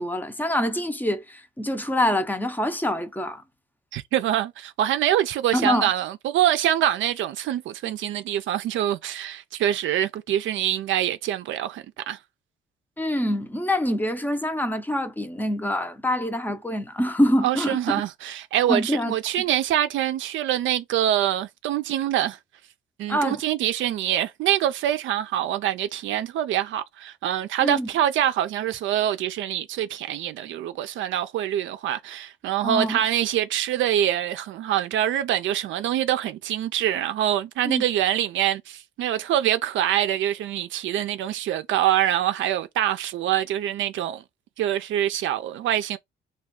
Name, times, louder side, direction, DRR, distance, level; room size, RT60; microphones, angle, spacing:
voice 1, 0.0-3.4 5.5-5.9 13.0-18.0 18.7-19.1 23.1-23.4 27.6-27.9 32.6-33.0 37.6-37.8, left 1 dB, 10° left, 0.5 m, -25 dB
voice 2, 3.9-12.2 17.4-22.4 23.0-44.2 44.6-46.0, right 11 dB, 75° right, 0.4 m, -25 dB
2.3 x 2.3 x 3.6 m
cardioid pair, 90°, 20 cm